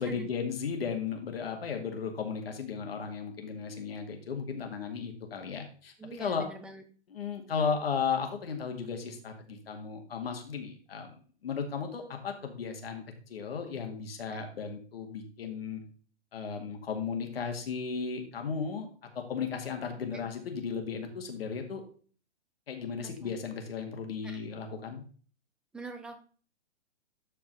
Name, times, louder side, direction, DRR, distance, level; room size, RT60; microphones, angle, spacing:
voice 1, 0.0-6.4 7.1-11.1 11.4-15.8 16.3-18.9 19.1-21.8 22.7-25.0, left 6 dB, 60° left, 4 dB, 2.1 m, -35 dB
voice 2, 6.0-6.8 14.3-14.4 20.1-20.3 23.0-23.4 24.2-24.5 25.7-26.2, right 3 dB, 5° right, 6 dB, 0.5 m, -44 dB
12.5 x 4.6 x 4.0 m, 0.42 s
figure-of-eight pair, 120°, 34 cm